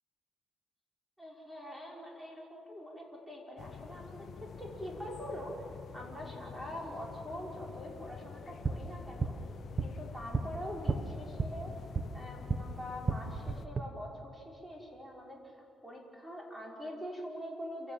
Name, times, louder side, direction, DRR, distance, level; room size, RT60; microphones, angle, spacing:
voice 1, 1.2-5.5 5.9-9.3 9.8-11.7 12.1-15.5 15.8-17.9, equal, 10° right, -2 dB, 6.0 m, -44 dB
sound 1, 3.6-13.7, left 7 dB, 60° left, 0.7 m, -48 dB
sound 2, 8.4-12.7 13.0-13.8, right 4 dB, 35° right, 1.4 m, -35 dB
29.0 x 16.0 x 7.6 m, 2.6 s
cardioid pair, 90°, 0 cm